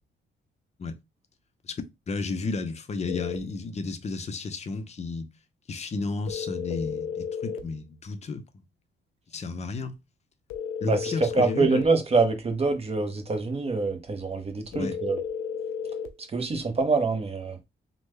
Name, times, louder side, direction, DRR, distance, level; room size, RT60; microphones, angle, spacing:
voice 1, 1.6-5.3 5.7-8.4 9.3-9.9 10.8-11.8 14.7-15.0, left 3 dB, 35° left, 0.5 m, -33 dB
sound 1, 3.1-3.4 6.3-7.7 10.5-11.9 14.7-16.2, left 7 dB, 90° left, 0.5 m, -33 dB
voice 2, 10.8-15.2 16.3-17.6, right 3 dB, 30° right, 0.8 m, -25 dB
3.3 x 2.1 x 3.2 m
cardioid pair, 90°, 20 cm